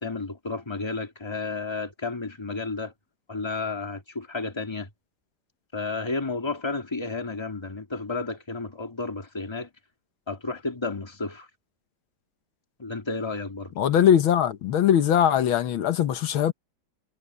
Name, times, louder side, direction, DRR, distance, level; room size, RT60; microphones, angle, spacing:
voice 1, 0.0-2.9 3.3-4.9 5.7-9.7 10.3-11.5 12.8-13.7, left 3 dB, 15° left, 2.3 m, -32 dB
voice 2, 13.8-16.5, left 9 dB, 85° left, 1.9 m, -21 dB
omnidirectional pair, 2.2 m